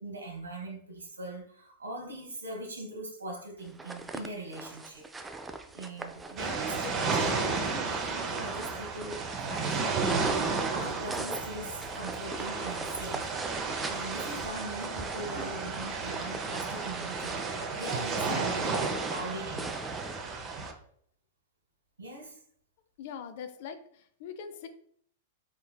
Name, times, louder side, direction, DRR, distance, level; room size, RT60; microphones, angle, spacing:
voice 1, 0.0-5.0 5.7-13.3 13.5-18.8 19.0-19.7 22.0-22.4, right 1 dB, 80° right, 1.0 m, -41 dB
sound 1, 3.6-20.7, right 3 dB, 10° right, 0.4 m, -42 dB
sound 2, 6.4-20.7, right 4 dB, 30° right, 0.7 m, -33 dB
voice 2, 18.3-18.7 23.0-24.7, left 7 dB, 50° left, 0.4 m, -42 dB
4.4 x 3.6 x 2.3 m
figure-of-eight pair, 100°, 0 cm